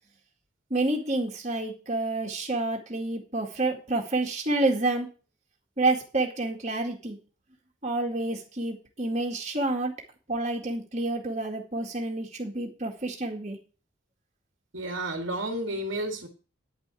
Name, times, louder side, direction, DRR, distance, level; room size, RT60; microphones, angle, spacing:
voice 1, 0.7-5.1 5.8-7.2 7.8-9.9 10.3-13.6, right 2 dB, 35° right, 1 dB, 2.0 m, -28 dB
voice 2, 14.7-16.3, right 1 dB, 75° right, 4 dB, 1.9 m, -31 dB
10.5 x 5.5 x 8.3 m, 0.35 s
head